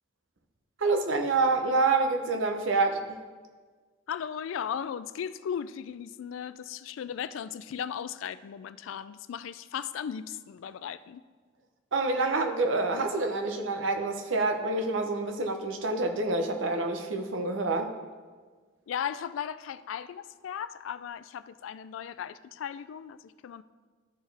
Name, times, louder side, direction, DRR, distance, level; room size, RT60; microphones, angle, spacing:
voice 1, 0.8-3.2 11.9-17.9, right 3 dB, 75° right, 5 dB, 0.8 m, -27 dB
voice 2, 4.1-11.2 18.9-23.6, left 8 dB, 80° left, 15 dB, 0.3 m, -36 dB
13.0 x 4.5 x 3.3 m, 1.5 s
head